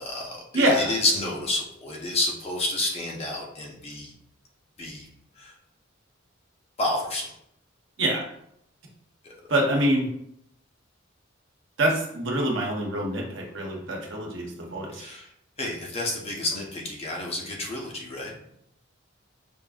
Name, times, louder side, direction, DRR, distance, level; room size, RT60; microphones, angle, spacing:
voice 1, 0.0-4.1 4.8-5.1 5.4-5.5 6.8-7.3 14.9-15.3 15.6-18.4, left 2 dB, 30° left, -2 dB, 0.7 m, -30 dB
voice 2, 0.5-0.9 8.0-8.3 9.5-10.1 11.8-15.0, right 1 dB, 70° right, -1 dB, 1.0 m, -25 dB
5.3 x 2.6 x 2.4 m, 0.74 s
head